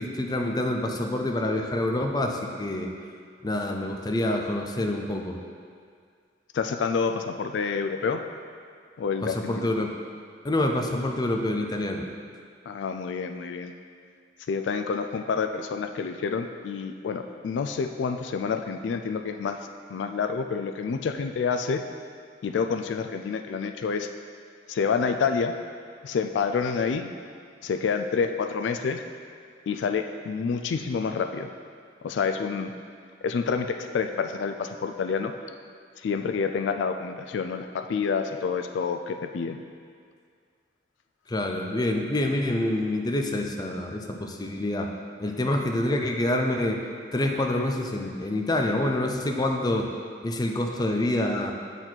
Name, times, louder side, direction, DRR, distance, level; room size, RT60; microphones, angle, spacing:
voice 1, 0.0-2.9 3.4-5.4 9.2-9.9 10.4-12.1 41.3-44.9 45.2-46.8 47.1-49.9 50.2-51.5, left 1 dB, 20° left, 2 dB, 0.5 m, -27 dB
voice 2, 6.5-8.2 9.0-9.7 12.7-13.7 14.5-19.6 19.9-21.8 22.4-24.1 24.7-25.5 26.0-27.1 27.6-29.0 29.7-31.5 32.0-32.7 33.2-35.3 36.0-39.6, left 5 dB, 75° left, 7 dB, 0.3 m, -28 dB
8.0 x 4.1 x 4.4 m, 2.1 s
head